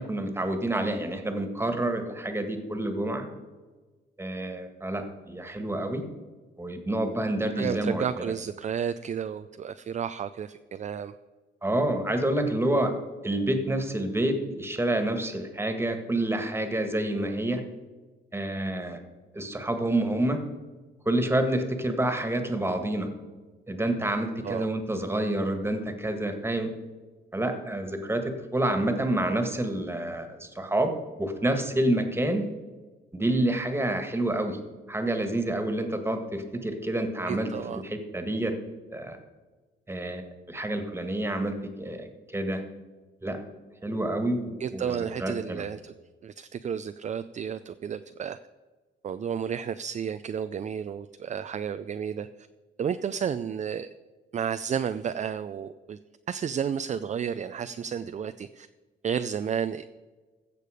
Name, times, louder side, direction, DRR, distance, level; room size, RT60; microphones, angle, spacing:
voice 1, 0.0-3.3 4.2-6.0 6.6-8.0 11.6-12.9 13.2-17.6 18.3-19.0 19.3-20.4 21.1-23.1 23.7-26.7 27.3-28.2 28.5-30.9 31.2-32.5 33.1-34.6 34.9-38.5 38.9-39.2 39.9-40.2 40.5-42.6 43.2-43.4 43.8-45.6, right 1 dB, 10° right, 6 dB, 1.8 m, -28 dB
voice 2, 7.6-11.1 24.4-24.7 37.3-37.8 44.6-45.9 46.2-48.4 49.0-52.3 52.8-53.9 54.3-56.0 56.3-58.7 59.0-59.8, right 8 dB, 35° right, 10 dB, 0.4 m, -32 dB
15.0 x 6.8 x 5.1 m, 1.3 s
cardioid pair, 90°, 20 cm